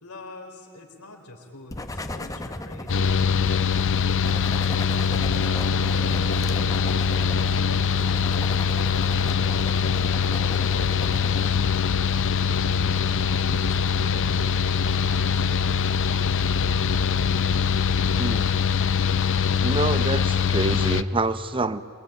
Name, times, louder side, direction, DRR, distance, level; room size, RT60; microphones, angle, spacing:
voice 1, 0.0-5.5 5.9-9.9 10.3-13.0 13.6-15.8, left 2 dB, 80° left, 2 dB, 4.1 m, -44 dB
sound 1, 1.7-11.5, left 1 dB, 15° left, 0.9 m, -37 dB
Mechanical fan, 2.9-21.0, left 6 dB, 60° left, 0.7 m, -23 dB
voice 2, 18.2-18.5 19.6-21.8, right 3 dB, 25° right, 13 dB, 0.7 m, -26 dB
27.0 x 22.0 x 8.9 m, 2.3 s
head